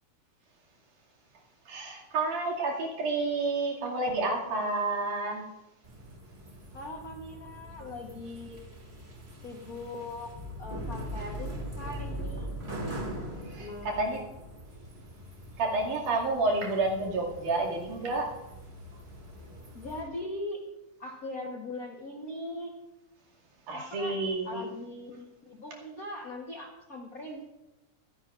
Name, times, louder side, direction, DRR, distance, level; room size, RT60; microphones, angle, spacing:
voice 1, 1.7-5.5 13.5-14.2 15.6-18.3 23.7-24.6, right 3 dB, 85° right, -2 dB, 3.8 m, -30 dB
sound 1, 5.8-20.0, right 1 dB, 25° right, 1.9 m, -42 dB
voice 2, 6.7-8.6 9.4-10.3 10.6-12.5 13.6-14.3 19.7-20.6 21.0-22.7 23.7-24.1 24.4-27.5, left 2 dB, 85° left, 1 dB, 0.7 m, -40 dB
24.5 x 10.5 x 2.5 m, 0.95 s
omnidirectional pair, 3.5 m